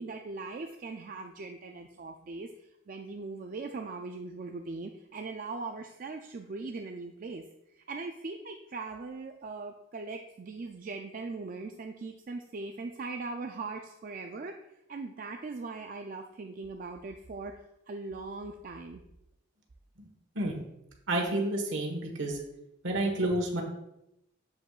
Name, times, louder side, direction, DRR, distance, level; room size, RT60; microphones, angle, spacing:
voice 1, 0.0-19.0, right 3 dB, 45° right, 4 dB, 0.4 m, -40 dB
voice 2, 21.1-22.4 22.8-23.6, right 1 dB, 65° right, 1 dB, 1.5 m, -30 dB
7.5 x 7.3 x 2.4 m, 0.85 s
head